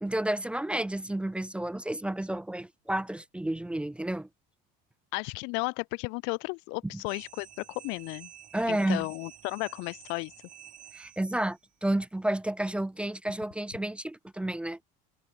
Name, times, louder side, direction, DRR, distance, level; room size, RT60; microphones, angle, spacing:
voice 1, 0.0-4.3 8.5-9.1 10.9-14.8, right 1 dB, 5° right, 0.5 m, -31 dB
voice 2, 5.1-8.3 8.7-10.3, left 32 dB, 75° left, 0.6 m, -34 dB
sound 1, 7.1-11.6, right 11 dB, 45° right, 2.0 m, -51 dB
supercardioid pair, 115°, 20 cm